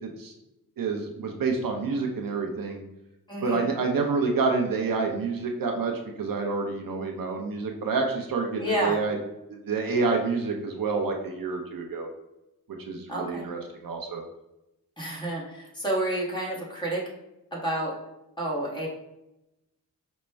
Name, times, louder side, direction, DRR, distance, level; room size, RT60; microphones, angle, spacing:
voice 1, 0.0-0.3 0.8-2.8 3.4-5.9 6.2-9.2 9.5-12.1 12.9-14.2, right 4 dB, 65° right, 2 dB, 0.6 m, -28 dB
voice 2, 3.3-3.7 8.6-9.0 13.1-13.5 15.0-17.0 17.5-17.9 18.4-18.9, right 1 dB, 10° left, -4 dB, 1.3 m, -29 dB
5.1 x 2.2 x 3.3 m, 0.91 s
wide cardioid pair, 85°, 36 cm